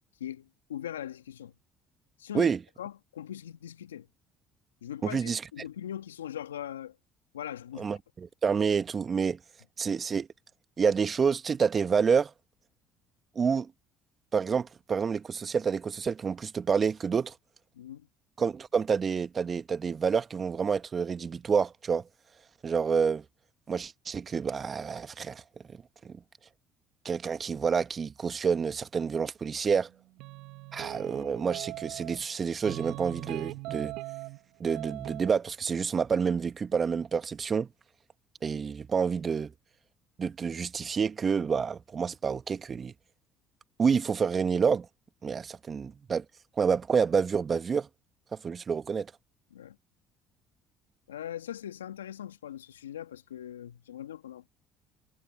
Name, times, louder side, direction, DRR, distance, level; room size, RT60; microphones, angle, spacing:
voice 1, 0.2-1.5 2.2-2.5 2.8-4.1 4.8-7.0 7.3-8.0 17.7-18.1 49.5-49.8 51.1-54.5, left 10 dB, 85° left, 2.1 m, -40 dB
voice 2, 5.0-5.4 7.8-9.4 9.8-10.3 10.8-12.3 13.3-13.7 14.3-17.3 18.4-22.0 22.6-23.2 23.7-25.4 25.7-26.2 27.0-29.9 30.7-33.9 34.6-37.7 38.4-39.5 40.2-42.9 43.8-44.9 45.2-46.2 46.6-47.9 48.3-49.1, right 6 dB, 40° right, 1.7 m, -28 dB
sound 1, 30.2-32.3 32.6-34.4 34.7-35.3, right 21 dB, 70° right, 1.3 m, -40 dB
hypercardioid pair, 60°, 0 cm